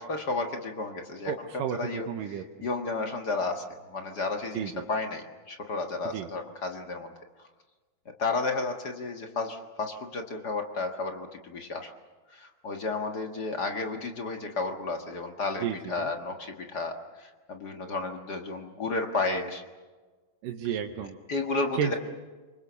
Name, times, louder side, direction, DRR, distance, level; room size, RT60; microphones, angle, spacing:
voice 1, 0.0-1.3 1.7-7.1 8.2-11.9 12.3-19.6 21.3-21.9, left 3 dB, 45° left, 4 dB, 1.3 m, -32 dB
voice 2, 1.3-2.4 4.5-4.9 6.1-6.3 15.6-16.1 20.4-21.2 21.8-22.0, right 8 dB, 75° right, 3 dB, 2.6 m, -32 dB
26.5 x 23.5 x 6.9 m, 1.3 s
omnidirectional pair, 4.1 m